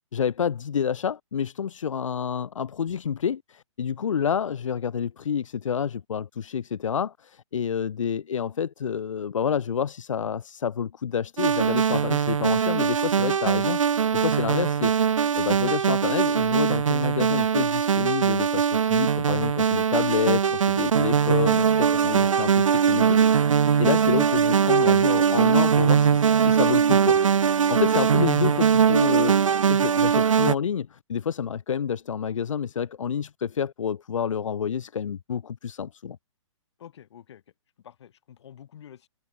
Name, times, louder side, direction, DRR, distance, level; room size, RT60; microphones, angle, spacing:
voice 1, 0.1-27.2 27.7-36.2, left 7 dB, 75° left, 1.2 m, -29 dB
sound 1, 11.4-30.5, right 7 dB, 80° right, 1.6 m, -21 dB
voice 2, 36.8-37.4 37.8-39.1, left 10 dB, 60° left, 7.7 m, -48 dB
hypercardioid pair, 150°, 16 cm